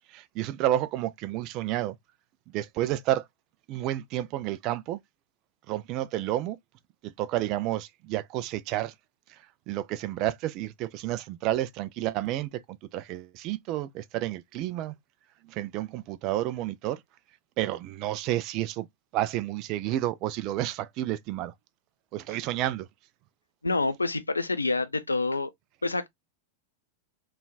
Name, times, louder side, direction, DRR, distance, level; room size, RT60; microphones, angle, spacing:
voice 1, 0.1-2.0 2.5-3.3 3.7-5.0 5.7-6.6 7.0-8.9 9.7-14.9 15.5-17.0 17.6-18.9 19.1-21.5 22.1-22.9, right 14 dB, 40° right, 0.3 m, -30 dB
voice 2, 23.6-25.5 25.8-26.1, left 3 dB, 80° left, 0.5 m, -27 dB
3.7 x 2.4 x 2.2 m
figure-of-eight pair, 90°, 0 cm